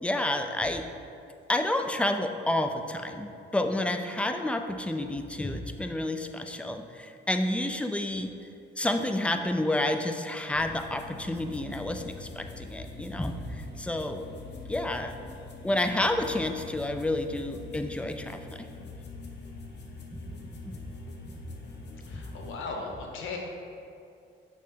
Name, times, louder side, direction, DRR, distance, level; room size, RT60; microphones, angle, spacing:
voice 1, 0.0-0.8 1.5-8.3 8.8-14.2 14.7-15.2 15.6-18.7 20.1-20.8 21.3-21.4, left 1 dB, 5° left, 6 dB, 0.4 m, -30 dB
sound 1, 10.5-22.6, left 3 dB, 60° left, 0.9 m, -44 dB
voice 2, 22.0-23.4, left 4 dB, 85° left, 1 dB, 1.0 m, -37 dB
6.4 x 3.4 x 5.1 m, 2.5 s
cardioid pair, 90°, 20 cm